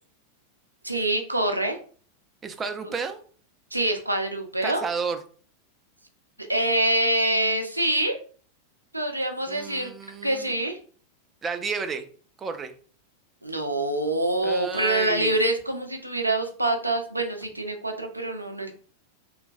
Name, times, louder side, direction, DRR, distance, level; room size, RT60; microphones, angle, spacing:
voice 1, 0.8-1.8 2.8-2.9 3.7-4.9 6.5-8.2 8.9-9.9 10.2-10.8 13.4-18.7, right 1 dB, 85° right, 5 dB, 0.5 m, -25 dB
voice 2, 2.4-3.2 4.6-5.2 9.5-10.5 11.4-12.0 12.4-12.7 14.4-15.4, right 5 dB, 20° right, 7 dB, 0.4 m, -32 dB
3.1 x 2.2 x 2.6 m, 0.43 s
figure-of-eight pair, 90°, 0 cm